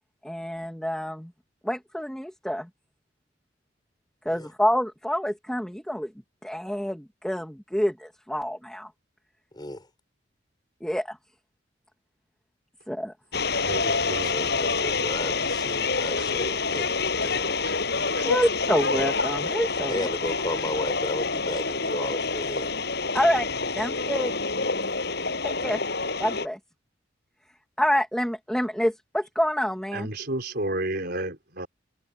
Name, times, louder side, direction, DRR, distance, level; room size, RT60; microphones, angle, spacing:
voice 1, 0.2-1.3 1.6-2.7 4.3-6.1 6.4-8.9 10.8-11.2 12.9-13.1 18.2-20.1 23.1-23.5 23.8-24.3 25.4-25.8 26.2-26.6 27.8-30.1, equal, 5° left, 2.1 m, -27 dB
voice 2, 9.5-9.9 13.8-17.7 19.9-22.7 24.8-24.9, left 1 dB, 25° left, 6.4 m, -34 dB
sound 1, 13.3-26.5, left 4 dB, 60° left, 7.4 m, -27 dB
voice 3, 13.6-14.3 16.2-16.3 17.6-17.7 18.1-18.3 29.9-31.7, right 1 dB, 55° right, 5.0 m, -31 dB
head